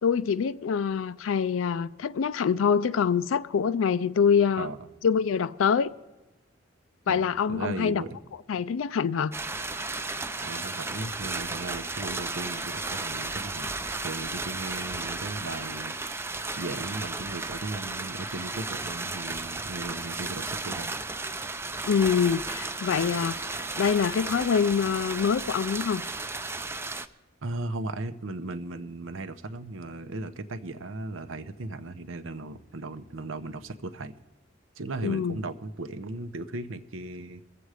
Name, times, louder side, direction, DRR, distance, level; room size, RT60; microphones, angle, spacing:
voice 1, 0.0-4.7 5.0-5.9 7.1-8.0 8.5-9.3 21.9-23.4 23.8-26.0 35.0-35.4, left 6 dB, 90° left, 0.4 m, -25 dB
voice 2, 7.1-8.2 10.4-21.0 27.4-34.1 34.8-37.4, right 2 dB, 80° right, 0.8 m, -37 dB
sound 1, 9.3-27.1, right 3 dB, 10° right, 0.4 m, -34 dB
22.5 x 7.8 x 4.9 m
head